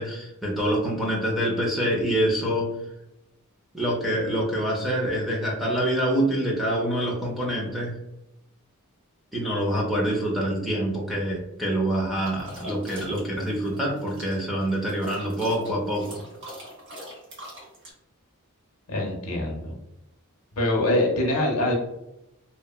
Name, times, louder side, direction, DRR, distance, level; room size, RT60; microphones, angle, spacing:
voice 1, 0.0-2.7 3.7-8.0 9.3-16.2, right 1 dB, ahead, -3 dB, 0.5 m, -26 dB
sound 1, 12.2-17.9, equal, 55° right, 1.1 m, -42 dB
voice 2, 18.9-19.7 20.6-21.7, left 1 dB, 70° left, 0 dB, 0.7 m, -24 dB
2.8 x 2.1 x 2.2 m, 0.89 s
head